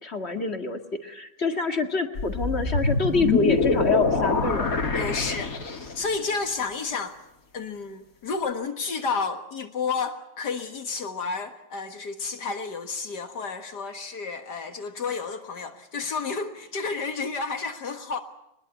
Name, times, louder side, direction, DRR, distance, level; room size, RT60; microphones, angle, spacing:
voice 1, 0.0-4.7, left 3 dB, 35° left, 2.2 m, -26 dB
sound 1, 2.2-6.1, left 4 dB, 55° left, 2.6 m, -25 dB
voice 2, 4.9-7.2 7.5-18.2, left 4 dB, 70° left, 2.1 m, -31 dB
22.5 x 21.0 x 8.2 m
omnidirectional pair, 1.9 m